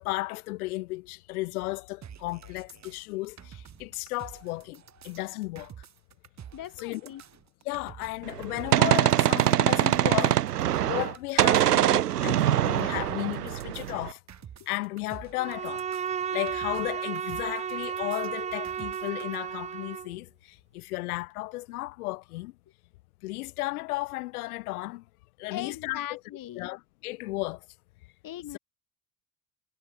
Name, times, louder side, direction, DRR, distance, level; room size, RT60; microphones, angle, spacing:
voice 1, 0.0-5.7 6.8-7.1 7.6-10.5 10.8-14.2 14.7-15.9 16.3-22.6 23.2-25.0 25.4-26.2 26.6-27.7, left 21 dB, 65° left, 5.4 m, -34 dB
sound 1, 2.0-19.4, right 9 dB, 35° right, 7.1 m, -49 dB
voice 2, 6.5-7.2 25.5-26.7 28.2-28.6, left 12 dB, 45° left, 6.9 m, -39 dB
Gunshot gunfire, 8.3-11.1 11.4-14.1, right 12 dB, 80° right, 1.3 m, -23 dB
Bowed string instrument, 15.3-20.2, right 8 dB, 15° right, 0.5 m, -33 dB
figure-of-eight pair, 70°, 46 cm